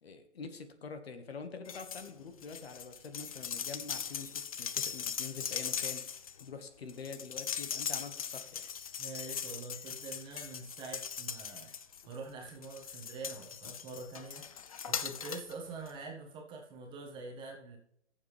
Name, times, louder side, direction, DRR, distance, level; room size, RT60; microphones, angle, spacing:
voice 1, 0.0-6.0 6.4-8.6, left 5 dB, 60° left, 8 dB, 1.5 m, -45 dB
sound 1, 1.6-2.1 2.4-12.2 12.6-15.5 15.9-16.0, left 7 dB, 30° left, 0.5 m, -40 dB
voice 2, 9.0-11.7 12.1-17.8, right 3 dB, 15° right, 1 dB, 1.5 m, -45 dB
18.5 x 7.3 x 3.4 m, 0.72 s
figure-of-eight pair, 140°, 35 cm